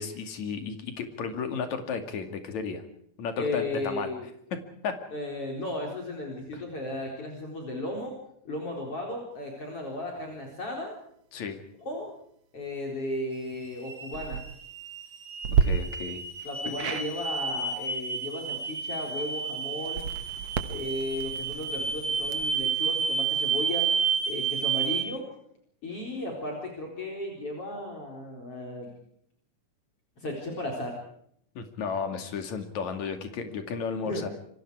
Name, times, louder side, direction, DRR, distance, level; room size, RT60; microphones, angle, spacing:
voice 1, 0.0-2.8 3.2-4.1 4.5-5.0 6.5-6.6 11.3-11.6 15.6-16.2 16.7-16.8 31.6-34.3, left 5 dB, 70° left, 7 dB, 3.6 m, -33 dB
voice 2, 3.4-4.3 5.1-8.2 8.4-11.0 11.8-12.1 12.5-14.4 16.4-20.0 20.7-23.9 24.3-25.3 25.8-28.9 30.2-30.9 34.0-34.3, left 1 dB, 50° left, 0 dB, 5.1 m, -35 dB
sound 1, 13.3-25.0, right 6 dB, 40° right, 4.2 m, -31 dB
sound 2, 14.0-14.4 15.4-15.6 16.8-17.1 19.8-22.6, right 7 dB, 60° right, 2.5 m, -30 dB
27.5 x 24.0 x 4.8 m, 0.68 s
omnidirectional pair, 3.5 m